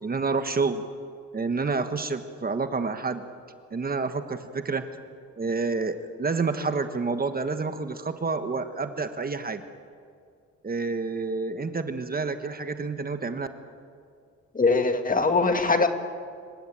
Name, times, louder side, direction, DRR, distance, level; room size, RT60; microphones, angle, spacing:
voice 1, 0.0-0.8 1.3-3.2 3.7-4.8 5.4-9.6 10.6-13.5, right 4 dB, 30° right, 8 dB, 1.4 m, -28 dB
voice 2, 14.5-15.9, left 3 dB, 25° left, 7 dB, 2.0 m, -22 dB
26.0 x 16.0 x 9.1 m, 2.2 s
cardioid pair, 90°, 30 cm